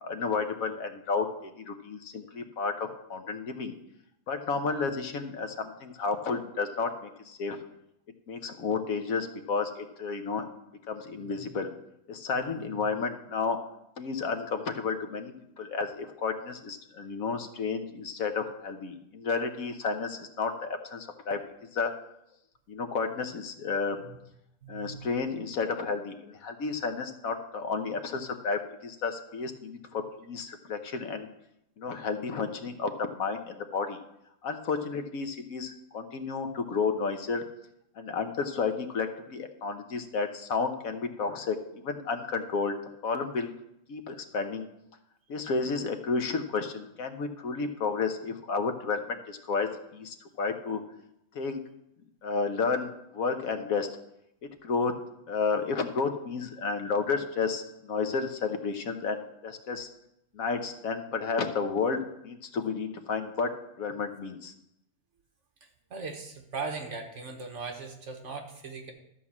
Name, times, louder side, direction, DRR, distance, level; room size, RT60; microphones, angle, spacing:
voice 1, 0.0-3.8 4.3-7.6 8.3-10.5 10.9-11.7 12.1-13.6 14.0-21.4 21.7-21.9 22.7-24.0 24.7-31.3 31.8-34.0 34.4-37.4 38.0-42.7 43.0-43.5 43.9-44.7 45.3-50.8 51.3-51.6 52.2-53.9 54.6-54.9 55.3-59.9 60.3-63.5 63.8-64.5, left 4 dB, 70° left, 7 dB, 1.3 m, -31 dB
voice 2, 12.3-12.9 24.0-24.2 24.6-25.1 65.6-68.9, right 4 dB, 55° right, 3 dB, 1.6 m, -40 dB
12.5 x 4.6 x 7.1 m, 0.81 s
omnidirectional pair, 1.6 m